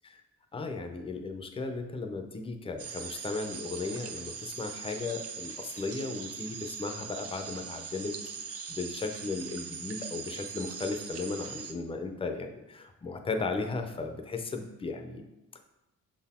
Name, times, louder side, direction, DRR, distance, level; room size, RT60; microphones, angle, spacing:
voice 1, 0.5-8.2 8.4-15.2 15.5-15.6, left 3 dB, 15° left, 5 dB, 0.5 m, -36 dB
sound 1, 2.8-11.7, right 6 dB, 50° right, 0.5 m, -41 dB
6.0 x 4.1 x 4.2 m, 1.0 s
wide cardioid pair, 145°, 32 cm